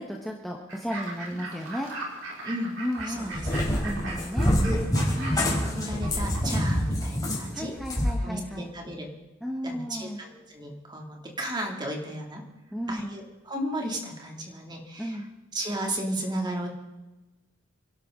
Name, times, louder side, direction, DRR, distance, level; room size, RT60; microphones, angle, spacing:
voice 1, 0.0-1.9 2.8-3.4 3.8-4.5 5.2-5.5 7.5-8.7 9.4-10.2 12.7-13.2 15.0-15.3, equal, ahead, -1 dB, 1.3 m, -34 dB
Fowl / Bird, 0.7-6.9, right 2 dB, 75° right, 4.6 m, -39 dB
voice 2, 2.4-2.8 3.1-4.0 4.5-4.8 5.4-7.7 8.2-9.1 9.6-12.4 12.9-15.2 15.5-16.7, right 1 dB, 20° right, 1 dB, 2.7 m, -34 dB
Cat, 3.0-8.1, equal, 20° left, 4.0 m, -26 dB
27.5 x 12.0 x 3.9 m, 1.1 s
head